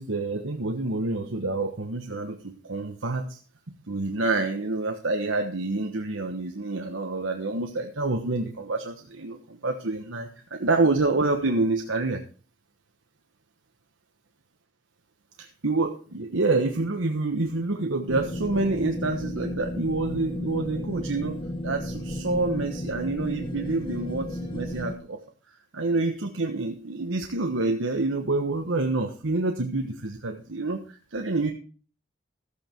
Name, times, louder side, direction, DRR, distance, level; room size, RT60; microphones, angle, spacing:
voice 1, 0.0-3.4 3.7-12.2 15.4-25.2 25.7-31.5, right 3 dB, 85° right, 4 dB, 1.2 m, -27 dB
sound 1, 18.1-25.0, left 1 dB, 25° left, 1.5 m, -34 dB
14.0 x 8.6 x 4.5 m, 0.38 s
head